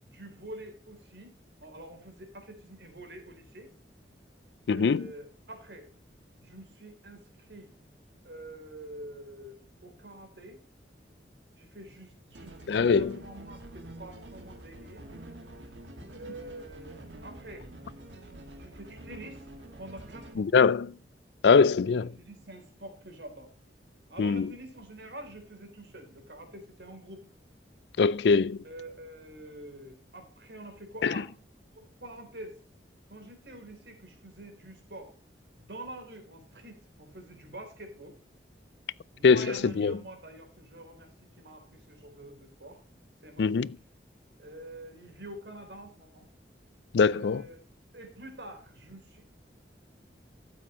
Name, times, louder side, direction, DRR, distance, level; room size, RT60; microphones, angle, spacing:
voice 1, 0.0-1.3 1.6-3.7 4.7-5.9 6.4-7.7 8.2-9.6 9.8-10.6 11.6-15.0 16.1-17.7 18.6-19.5 19.8-20.5 21.9-23.5 24.1-27.2 28.6-31.3 31.7-32.6 33.1-35.1 35.6-38.2 39.1-42.8 43.2-43.7 44.4-46.3 47.1-47.6 47.9-49.2, right 1 dB, 70° right, 3.4 m, -46 dB
voice 2, 4.7-5.0 12.7-13.0 20.4-20.9 21.4-22.1 24.2-24.5 28.0-28.6 39.2-39.5 39.8-40.0 43.4-43.7 46.9-47.4, left 5 dB, 70° left, 0.4 m, -22 dB
sound 1, 12.3-20.3, right 1 dB, 85° right, 2.0 m, -47 dB
13.0 x 8.7 x 3.0 m
head